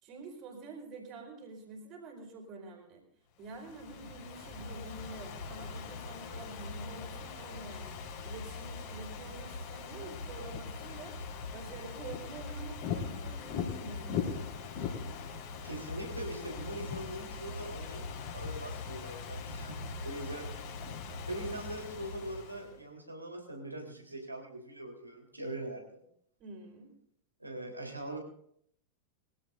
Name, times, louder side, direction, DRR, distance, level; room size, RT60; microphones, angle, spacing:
voice 1, 0.0-3.0 3.4-11.1 11.5-14.5 20.8-21.0 26.4-26.9, right 3 dB, 35° right, 1 dB, 4.5 m, -48 dB
Ocean / Fireworks, 3.5-22.7, left 5 dB, 45° left, 4.2 m, -40 dB
voice 2, 15.6-20.5 21.3-26.0 27.4-28.2, right 1 dB, 85° right, 2 dB, 3.7 m, -42 dB
23.0 x 16.5 x 2.6 m, 0.67 s
figure-of-eight pair, 90°, 0 cm